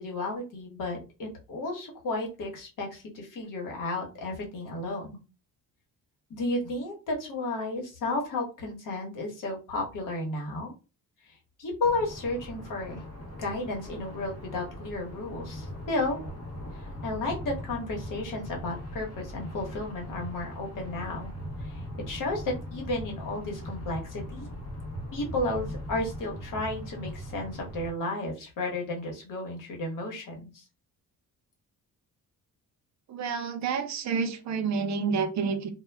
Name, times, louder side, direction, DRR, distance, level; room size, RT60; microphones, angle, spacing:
voice 1, 0.0-5.2 6.3-10.7 11.6-13.0 13.4-16.2 16.8-21.3 21.6-21.8 22.1-24.5 25.1-30.6, left 2 dB, 65° left, 1 dB, 1.1 m, -33 dB
sound 1, 11.8-27.9, equal, 45° left, 0.7 m, -40 dB
voice 2, 33.1-35.7, right 5 dB, 55° right, 7 dB, 0.5 m, -29 dB
2.2 x 2.1 x 3.2 m, 0.30 s
cardioid pair, 125°, 35 cm